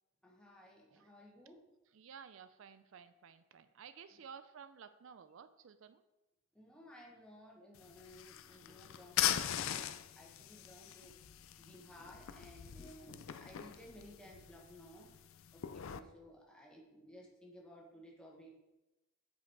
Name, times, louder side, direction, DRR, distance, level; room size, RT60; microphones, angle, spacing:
voice 1, 0.2-1.6 4.1-4.3 6.5-9.9 10.2-11.2 11.6-15.1 15.5-18.5, equal, 5° left, -3 dB, 1.4 m, -57 dB
voice 2, 1.9-6.0 8.5-8.6 10.9-11.0 15.7-16.1, right 6 dB, 65° right, 12 dB, 0.4 m, -55 dB
sound 1, 7.7-16.0, left 11 dB, 70° left, 0.4 m, -41 dB
8.2 x 5.3 x 4.5 m, 1.0 s
head